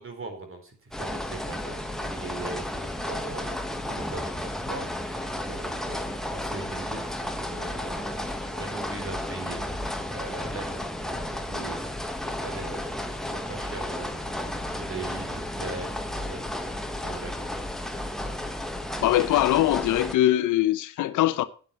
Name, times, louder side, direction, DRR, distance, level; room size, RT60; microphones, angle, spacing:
voice 1, 0.0-11.2 11.5-16.0 16.3-17.6, right 3 dB, 45° right, 4.1 m, -41 dB
sound 1, 0.9-20.1, left 1 dB, ahead, 1.6 m, -33 dB
voice 2, 19.0-21.5, left 14 dB, 85° left, 0.9 m, -22 dB
9.4 x 9.2 x 6.8 m
cardioid pair, 90°, 30 cm